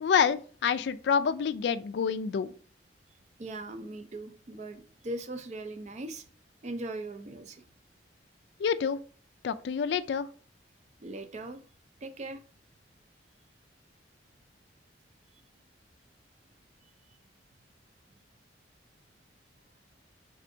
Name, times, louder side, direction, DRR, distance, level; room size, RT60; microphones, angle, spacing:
voice 1, 0.0-2.5 8.6-9.0 9.4-10.3, left 7 dB, 65° left, 0.3 m, -27 dB
voice 2, 3.4-6.2 6.6-7.6 11.0-11.6 12.0-12.4, right 2 dB, 40° right, 0.4 m, -39 dB
4.3 x 3.6 x 2.6 m
head